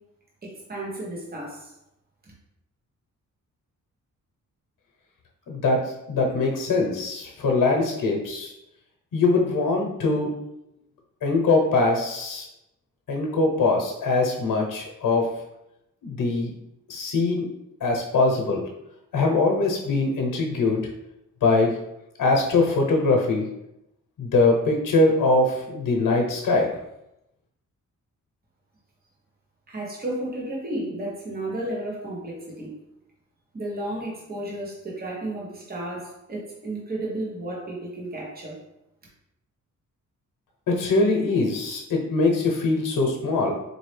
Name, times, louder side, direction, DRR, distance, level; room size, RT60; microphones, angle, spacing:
voice 1, 0.4-1.7 2.2-2.3 29.7-32.7 33.5-38.6, right 1 dB, 30° right, -4 dB, 1.1 m, -33 dB
voice 2, 5.5-8.5 9.1-10.3 11.2-12.5 13.1-15.3 16.0-16.5 16.9-17.5 17.8-18.6 19.1-20.8 21.4-21.8 22.2-23.4 24.2-26.7 40.7-43.6, left 3 dB, 90° left, 1 dB, 0.9 m, -22 dB
4.1 x 2.7 x 3.2 m, 0.85 s
wide cardioid pair, 155°, 32 cm